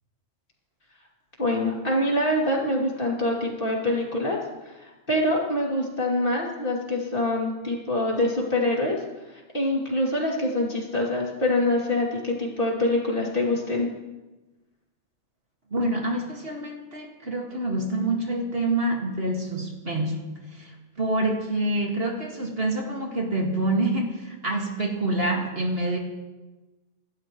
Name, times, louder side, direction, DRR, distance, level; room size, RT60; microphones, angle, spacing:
voice 1, 1.4-9.0 9.3-13.9, left 1 dB, 40° left, -2 dB, 3.0 m, -25 dB
voice 2, 15.7-26.0, right 2 dB, 45° right, 0 dB, 2.2 m, -27 dB
26.5 x 12.5 x 3.1 m, 1.1 s
omnidirectional pair, 1.4 m